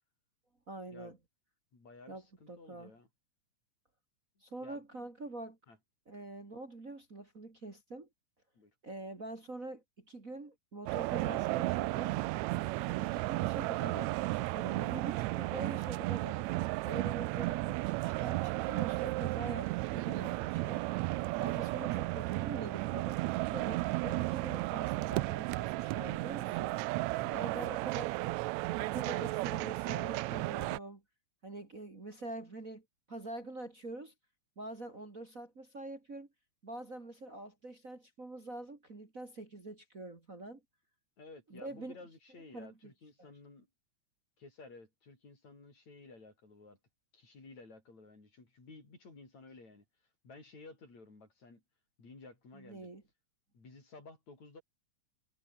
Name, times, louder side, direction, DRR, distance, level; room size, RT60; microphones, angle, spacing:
voice 1, 0.7-1.2 2.1-2.2 2.5-2.9 4.4-5.6 6.1-8.1 8.8-12.2 12.8-16.5 16.8-20.8 21.4-23.3 23.5-26.8 27.3-28.1 28.8-31.0 31.4-34.1 34.6-36.3 36.6-40.6 41.5-41.9 42.5-42.7 43.2-43.3 52.5-53.0, right 2 dB, 25° right, 2.9 m, -45 dB
voice 2, 1.7-3.1 4.6-5.1 5.7-5.8 8.6-8.8 12.7-13.2 17.0-17.3 21.5-21.7 27.2-27.9 41.2-43.7 44.4-46.8 47.1-49.9 50.2-51.6 52.0-52.9 53.5-54.6, left 3 dB, 60° left, 8.6 m, -54 dB
sound 1, 10.9-30.8, right 20 dB, 80° right, 1.7 m, -34 dB
omnidirectional pair, 3.6 m